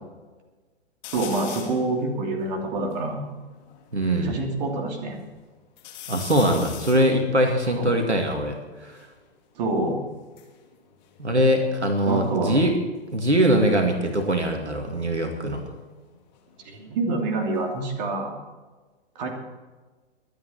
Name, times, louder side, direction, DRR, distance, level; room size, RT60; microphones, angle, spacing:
sound 1, 1.0-1.9 2.4-2.5 2.7-4.3 4.8-5.4 5.8-9.1 10.1-12.0 12.3-12.7 14.3-16.9 17.3-18.1, left 10 dB, 40° left, 2.6 m, -43 dB
voice 1, 1.1-3.2 4.2-5.2 7.8-7.9 9.6-10.0 12.1-12.6 16.6-18.4 19.1-19.3, right 2 dB, 40° right, 2 dB, 2.9 m, -27 dB
voice 2, 3.9-4.4 6.1-9.0 11.2-12.7 13.1-15.6, right 1 dB, 80° right, 4 dB, 2.3 m, -22 dB
24.0 x 8.9 x 4.4 m, 1.3 s
figure-of-eight pair, 120°, 34 cm